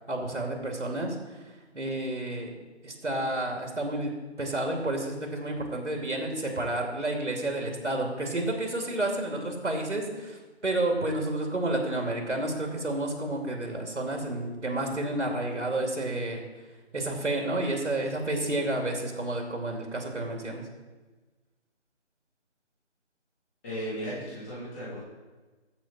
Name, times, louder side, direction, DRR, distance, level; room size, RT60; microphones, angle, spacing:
voice 1, 0.1-2.5 2.8-4.1 4.4-16.4 16.9-20.6, right 1 dB, 85° right, 2 dB, 2.6 m, -30 dB
voice 2, 23.6-25.0, equal, 10° left, -9 dB, 2.9 m, -35 dB
15.0 x 6.4 x 4.2 m, 1.3 s
figure-of-eight pair, 165°, 35 cm